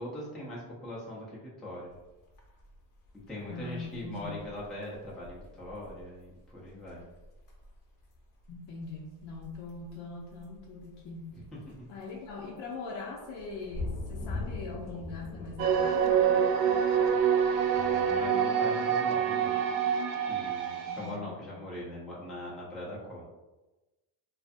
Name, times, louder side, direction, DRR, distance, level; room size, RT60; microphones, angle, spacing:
voice 1, 0.0-1.9 3.1-7.0 11.3-11.9 17.7-19.7 20.2-23.2, left 1 dB, ahead, -6 dB, 0.4 m, -41 dB
sound 1, 1.9-18.3, left 2 dB, 45° left, 0.6 m, -44 dB
voice 2, 3.5-4.4 8.5-11.4 11.9-16.8 20.9-21.6, left 3 dB, 85° left, -4 dB, 0.6 m, -42 dB
sound 2, 15.6-21.1, right 8 dB, 70° right, 0.5 m, -26 dB
2.4 x 2.4 x 2.5 m, 1.1 s
cardioid pair, 130°, 46 cm